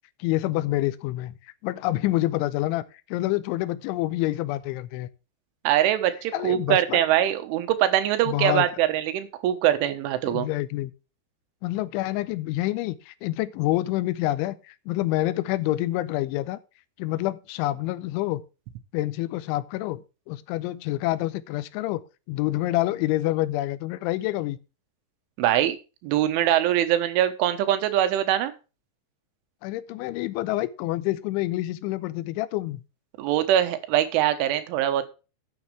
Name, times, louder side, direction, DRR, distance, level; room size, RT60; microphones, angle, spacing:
voice 1, 0.2-2.8 3.1-5.1 6.3-7.0 8.3-8.7 10.2-10.9 11.6-16.6 17.0-18.4 18.9-22.0 22.3-24.6 29.6-32.8, left 16 dB, 85° left, 3.1 m, -27 dB
voice 2, 5.7-10.5 25.4-25.8 26.0-28.5 33.2-35.1, right 12 dB, 90° right, 3.7 m, -23 dB
13.5 x 8.7 x 3.3 m
omnidirectional pair, 5.4 m